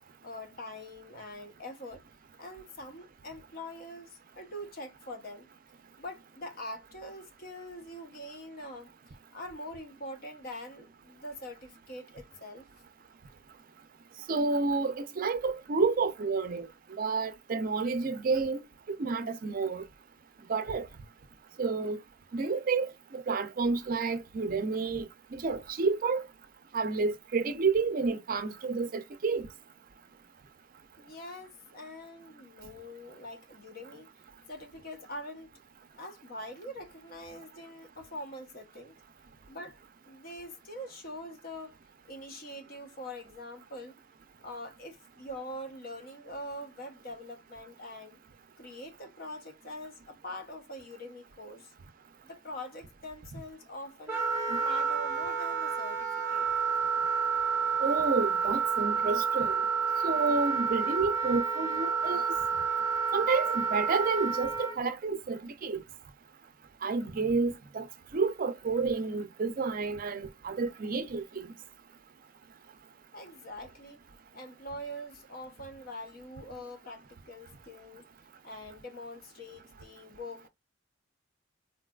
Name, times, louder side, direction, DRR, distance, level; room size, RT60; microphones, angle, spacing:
voice 1, 0.2-2.0 2.4-5.5 6.0-12.7 31.0-34.1 34.5-35.5 36.0-39.0 39.5-41.8 42.1-44.0 44.4-48.2 48.6-51.7 52.2-54.2 54.6-56.5 73.1-74.0 74.3-78.1 78.4-80.5, left 1 dB, 50° left, 0.8 m, -44 dB
voice 2, 14.3-16.7 17.0-18.6 18.9-19.8 20.5-20.9 21.6-22.0 22.3-26.2 26.7-29.5 54.5-54.6 57.8-59.6 60.0-62.3 63.1-65.8 66.8-67.9 68.1-71.5, right 4 dB, 45° right, 0.4 m, -30 dB
Wind instrument woodwind instrument, 54.1-64.8, right 5 dB, 15° right, 0.9 m, -29 dB
3.9 x 2.3 x 2.2 m
head